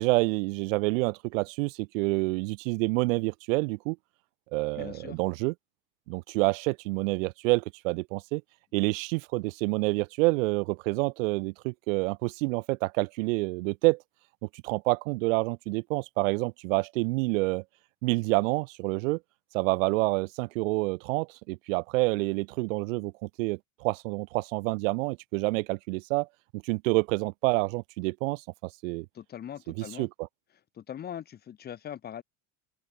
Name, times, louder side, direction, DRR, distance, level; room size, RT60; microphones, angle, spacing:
voice 1, 0.0-4.0 4.5-5.5 6.1-8.4 8.7-14.0 14.6-17.6 18.0-19.2 19.5-26.3 26.6-29.1 29.7-30.1, right 24 dB, 80° right, 0.8 m, -28 dB
voice 2, 4.8-5.2 29.1-30.1 30.7-32.2, left 9 dB, 25° left, 2.6 m, -41 dB
open air
cardioid pair, 165°, 39 cm